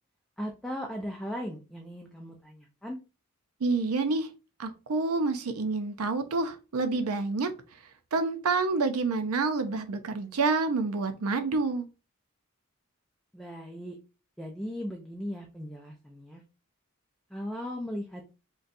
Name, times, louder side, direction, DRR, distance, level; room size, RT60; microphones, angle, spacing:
voice 1, 0.4-3.0 13.3-14.0 14.4-16.4 17.3-18.3, equal, ahead, 0.3 m, -37 dB
voice 2, 3.6-4.3 4.6-7.5 8.1-11.9, right 3 dB, 90° right, 0.5 m, -28 dB
3.9 x 2.2 x 2.6 m
head